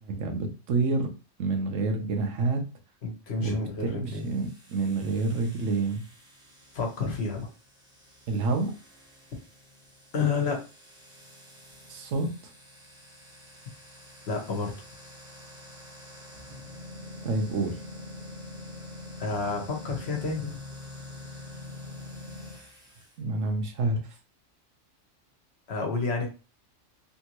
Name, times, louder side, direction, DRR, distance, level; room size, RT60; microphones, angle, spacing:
voice 1, 0.0-1.1 1.4-2.6 3.4-3.5 3.8-6.0 8.3-8.7 11.9-12.3 17.2-17.8 23.2-24.0, right 3 dB, 90° right, 4 dB, 1.2 m, -28 dB
voice 2, 3.0-4.2 6.7-7.5 10.1-10.6 14.3-14.7 19.2-20.6 25.7-26.3, left 4 dB, 60° left, 2 dB, 1.2 m, -29 dB
sound 1, 4.0-23.1, left 2 dB, 5° right, 0.9 m, -46 dB
3.4 x 2.7 x 3.0 m, 0.32 s
omnidirectional pair, 1.3 m